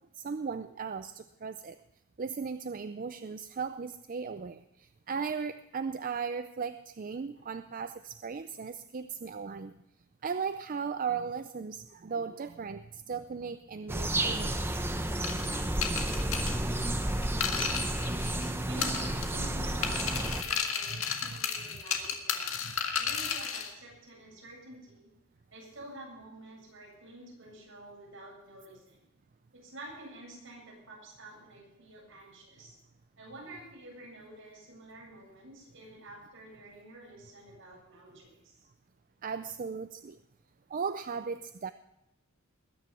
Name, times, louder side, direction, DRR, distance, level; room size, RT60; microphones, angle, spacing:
voice 1, 0.2-1.8 2.2-4.6 5.1-9.7 10.2-14.5 20.9-21.4 22.6-22.7 39.2-40.2 40.7-41.7, right 5 dB, 40° right, 11 dB, 0.4 m, -37 dB
sound 1, 13.9-20.4, right 1 dB, 10° right, 0.9 m, -31 dB
sound 2, 15.2-18.5 18.8-19.5 19.8-23.7, left 7 dB, 75° left, 1.9 m, -33 dB
voice 2, 18.6-22.5 23.0-25.1 25.5-29.0 29.5-32.8 33.2-38.7, right 1 dB, 65° right, -2 dB, 7.9 m, -49 dB
20.5 x 9.9 x 6.0 m, 0.85 s
head